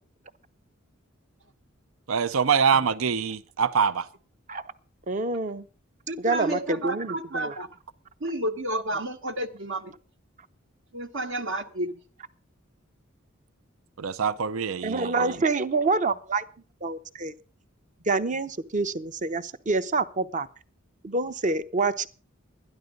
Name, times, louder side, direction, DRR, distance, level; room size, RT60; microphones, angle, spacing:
voice 1, 2.1-4.1 14.0-15.3, right 6 dB, 90° right, 0.6 m, -24 dB
voice 2, 5.1-5.7 6.2-7.5 14.8-16.4 16.8-17.3 18.1-20.5 21.0-22.1, right 3 dB, 35° right, 0.7 m, -27 dB
voice 3, 6.1-7.7 8.2-9.9 10.9-12.0, right 1 dB, 70° right, 1.2 m, -31 dB
12.5 x 11.0 x 5.2 m
head